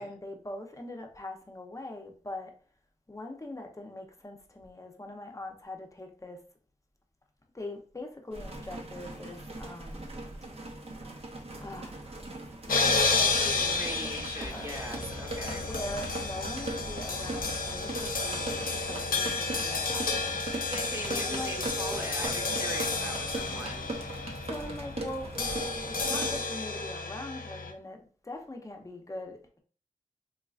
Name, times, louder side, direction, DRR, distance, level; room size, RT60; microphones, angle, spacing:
voice 1, 0.0-2.6 3.1-6.4 7.5-10.1 11.6-12.0 12.7-14.8 15.5-20.3 21.1-21.6 24.5-29.6, left 1 dB, 20° left, 0.7 m, -42 dB
sound 1, 8.3-26.4, right 1 dB, 45° right, 0.8 m, -40 dB
sound 2, 12.7-27.7, left 3 dB, 85° left, 0.5 m, -31 dB
voice 2, 13.7-15.6 20.7-23.9, equal, 15° right, 1.2 m, -40 dB
3.7 x 3.2 x 2.4 m
wide cardioid pair, 70°, 14 cm